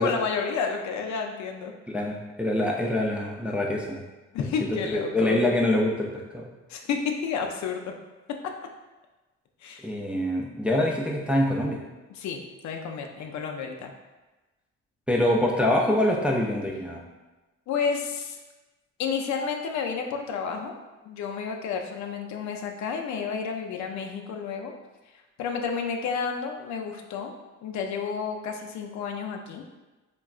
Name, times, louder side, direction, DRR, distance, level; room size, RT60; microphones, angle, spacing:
voice 1, 0.0-1.7 4.3-5.4 6.7-7.9 9.6-9.9 12.1-13.9 17.7-18.4 19.0-20.7 21.0-24.7 25.4-27.3 27.6-29.6, left 6 dB, 70° left, 3 dB, 0.5 m, -31 dB
voice 2, 1.9-4.0 4.7-6.1 6.3-6.5 9.8-11.8 15.1-17.0, left 1 dB, 5° right, -1 dB, 0.3 m, -25 dB
3.6 x 2.2 x 2.3 m, 1.1 s
cardioid pair, 90°, 30 cm